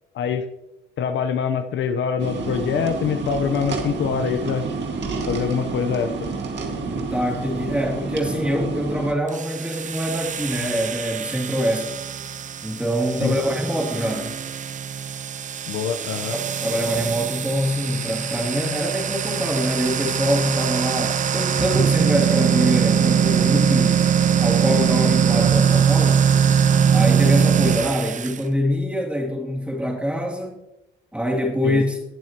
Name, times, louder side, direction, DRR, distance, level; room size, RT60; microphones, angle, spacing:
voice 1, 1.0-4.6 5.3-6.1 13.2-13.4 15.7-16.3 31.6-31.8, left 7 dB, 70° left, 8 dB, 0.9 m, -24 dB
sound 1, 2.2-9.1, right 4 dB, 65° right, 2.0 m, -29 dB
voice 2, 7.1-11.9 12.6-14.4 16.3-24.0 24.4-26.2 26.9-30.6 31.1-32.0, equal, 5° right, 0 dB, 2.8 m, -24 dB
sound 2, 9.3-28.4, right 7 dB, 40° right, 0.5 m, -22 dB
19.5 x 7.5 x 3.0 m, 0.92 s
cardioid pair, 90°, 20 cm